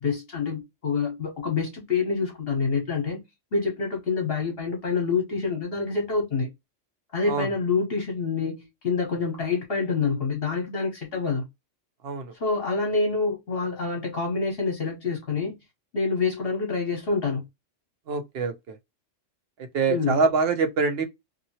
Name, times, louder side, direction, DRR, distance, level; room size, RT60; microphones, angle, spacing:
voice 1, 0.0-3.2 3.5-6.5 7.1-11.4 12.3-15.5 15.9-17.4 19.9-20.2, left 4 dB, 55° left, 1.1 m, -27 dB
voice 2, 18.1-18.8 19.7-21.0, right 4 dB, 55° right, 0.8 m, -24 dB
2.7 x 2.7 x 2.7 m
omnidirectional pair, 1.3 m